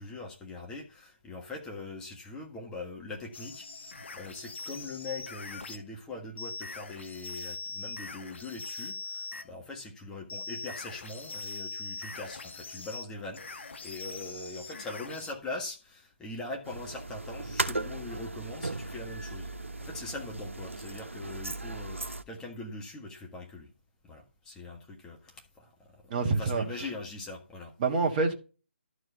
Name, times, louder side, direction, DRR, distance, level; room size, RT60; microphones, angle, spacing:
voice 1, 0.0-23.7 24.0-27.7, left 2 dB, 10° left, 1.5 m, -42 dB
sound 1, 3.3-5.9 6.4-9.5 10.3-15.3, left 3 dB, 60° left, 1.5 m, -42 dB
sound 2, 16.7-22.2, right 2 dB, 85° right, 1.1 m, -37 dB
voice 2, 26.1-26.8 27.8-28.3, right 3 dB, 30° right, 1.5 m, -27 dB
12.0 x 4.9 x 5.6 m
figure-of-eight pair, 145°, 7 cm